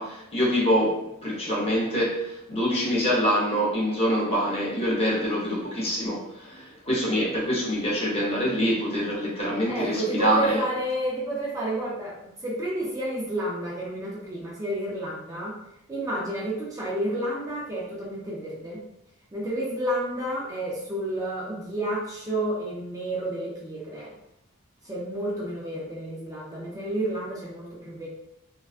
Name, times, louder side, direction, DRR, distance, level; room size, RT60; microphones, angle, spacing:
voice 1, 0.0-10.6, equal, 30° left, -4 dB, 0.7 m, -25 dB
voice 2, 9.7-15.6 15.9-18.8 19.3-24.1 24.8-28.1, right 1 dB, 15° right, -5 dB, 0.5 m, -30 dB
2.3 x 2.2 x 2.4 m, 0.82 s
head